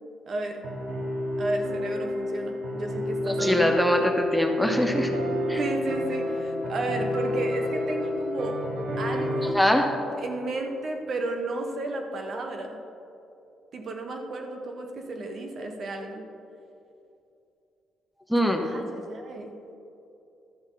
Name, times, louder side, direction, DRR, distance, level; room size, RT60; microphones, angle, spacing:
voice 1, 0.3-0.6 1.4-3.7 5.6-8.6 9.0-9.6 10.2-12.8 13.7-16.2 18.6-19.5, right 2 dB, 55° right, 4 dB, 1.2 m, -33 dB
sound 1, 0.6-9.5, left 1 dB, 75° right, 1.4 m, -30 dB
voice 2, 3.2-5.1 5.5-5.6 9.4-9.9 18.3-18.7, left 1 dB, ahead, 4 dB, 0.9 m, -23 dB
12.0 x 7.9 x 3.9 m, 2.7 s
cardioid pair, 90°, 0 cm